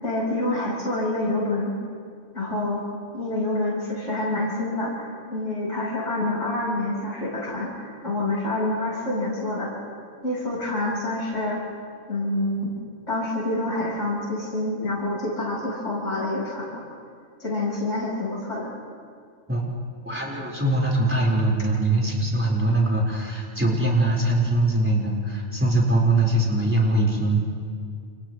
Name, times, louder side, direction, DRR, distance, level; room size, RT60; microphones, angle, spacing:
voice 1, 0.0-1.7 2.3-2.8 3.1-9.7 10.2-11.6 12.1-12.7 13.1-16.8 17.4-18.7, left 2 dB, 75° left, -6 dB, 5.8 m, -27 dB
voice 2, 20.0-27.4, right 2 dB, 10° right, -3 dB, 4.6 m, -22 dB
29.5 x 28.5 x 3.2 m, 2.1 s
omnidirectional pair, 1.3 m